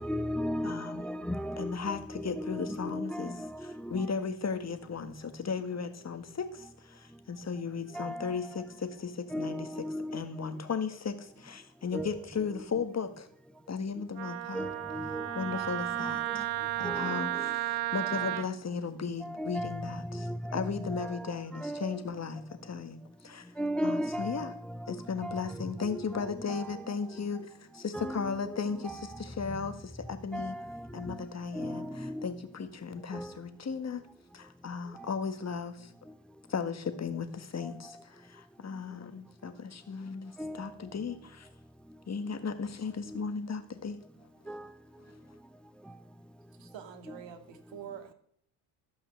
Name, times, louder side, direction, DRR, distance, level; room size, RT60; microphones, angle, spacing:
voice 1, 0.0-4.1 7.9-8.4 9.3-10.6 11.9-12.5 14.5-15.7 16.0-16.4 16.8-17.5 19.2-22.0 23.6-26.9 27.9-29.1 29.5-29.6 30.3-31.2 31.5-32.3 33.1-33.3 40.4-40.7 43.1-43.2 44.5-44.7, equal, ahead, 0.4 m, -37 dB
voice 2, 0.6-1.2 1.6-9.7 10.1-13.3 13.7-14.7 15.4-16.5 16.8-23.5 23.8-24.5 24.9-30.6 30.9-34.0 34.3-35.9 36.5-41.5 42.1-44.0 44.4-44.6 45.1-45.2, left 5 dB, 30° left, 1.7 m, -36 dB
Wind instrument woodwind instrument, 14.2-18.5, right 14 dB, 85° right, 1.0 m, -33 dB
voice 3, 46.6-48.1, right 9 dB, 60° right, 2.1 m, -45 dB
13.5 x 5.7 x 6.7 m
supercardioid pair, 75°, 50 cm